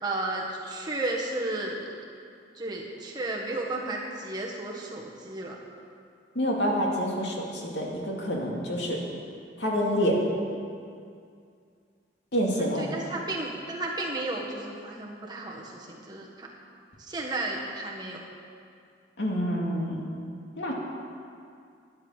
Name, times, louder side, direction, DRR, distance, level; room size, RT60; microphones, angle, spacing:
voice 1, 0.0-1.9 2.5-5.6 12.6-16.5 17.0-18.2, right 2 dB, 20° right, -2 dB, 1.6 m, -33 dB
voice 2, 6.4-9.0 9.6-10.2 12.3-12.8 19.2-20.1 20.6-20.7, equal, 70° left, -2 dB, 2.5 m, -27 dB
12.0 x 10.5 x 7.5 m, 2.3 s
head